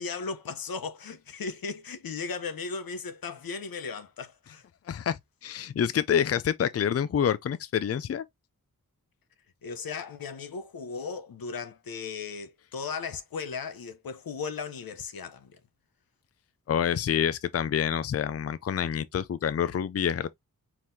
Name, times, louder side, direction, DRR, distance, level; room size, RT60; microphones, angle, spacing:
voice 1, 0.0-4.7 9.6-15.6, left 5 dB, 85° left, 0.8 m, -36 dB
voice 2, 4.9-8.3 16.7-20.3, left 8 dB, 45° left, 0.4 m, -27 dB
4.7 x 3.7 x 2.7 m
wide cardioid pair, 80°, 34 cm